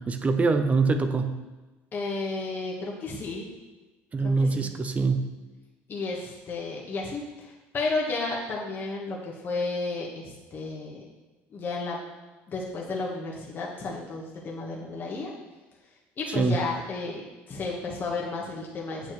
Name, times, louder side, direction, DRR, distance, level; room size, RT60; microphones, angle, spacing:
voice 1, 0.0-1.4 4.1-5.2 16.3-16.6, right 4 dB, 25° right, 8 dB, 0.6 m, -24 dB
voice 2, 1.9-3.5 4.2-4.7 5.9-11.0 11.5-12.0 12.5-15.3 16.2-19.1, left 3 dB, 40° left, -2 dB, 1.3 m, -32 dB
8.4 x 7.1 x 3.1 m, 1.2 s
cardioid pair, 110°, 5 cm